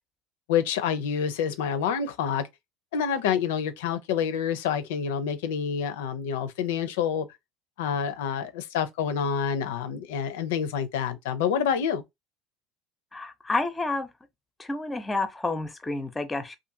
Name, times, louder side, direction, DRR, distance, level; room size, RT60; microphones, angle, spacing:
voice 1, 0.5-2.5 2.9-7.3 7.8-12.0, left 7 dB, 90° left, 0.4 m, -27 dB
voice 2, 13.1-14.1 14.6-16.6, left 2 dB, 15° left, 0.5 m, -29 dB
2.5 x 2.4 x 2.6 m
supercardioid pair, 100°, 0 cm